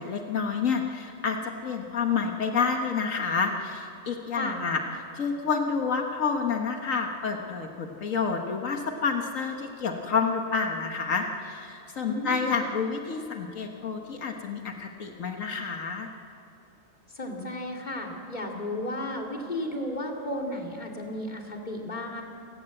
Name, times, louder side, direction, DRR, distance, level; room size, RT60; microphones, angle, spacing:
voice 1, 0.0-4.8 5.1-16.1, left 5 dB, 85° left, 3 dB, 1.7 m, -29 dB
voice 2, 12.0-12.5 17.1-22.2, left 1 dB, 35° left, 0 dB, 2.9 m, -34 dB
29.5 x 16.5 x 7.8 m, 2.8 s
omnidirectional pair, 1.3 m